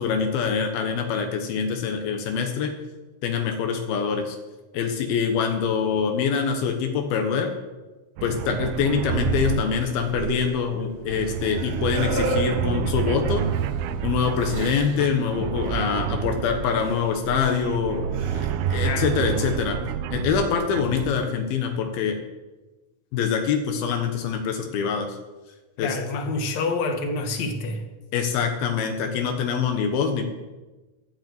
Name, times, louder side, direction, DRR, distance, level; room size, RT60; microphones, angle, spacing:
voice 1, 0.0-2.7 3.2-4.4 4.7-7.5 8.2-13.4 14.0-18.1 18.3-19.8 20.1-22.2 23.1-25.2 25.8-26.0 28.1-30.2, left 6 dB, 80° left, 5 dB, 3.1 m, -25 dB
sound 1, 8.2-21.3, right 9 dB, 90° right, 2.6 m, -29 dB
sound 2, 9.8-15.3 15.6-15.8 16.8-17.0 17.6-17.7 18.1-19.5, right 3 dB, 60° right, 2.7 m, -35 dB
voice 2, 25.8-27.8, left 3 dB, 55° left, 5 dB, 2.3 m, -27 dB
13.0 x 8.9 x 7.9 m, 1.2 s
omnidirectional pair, 4.3 m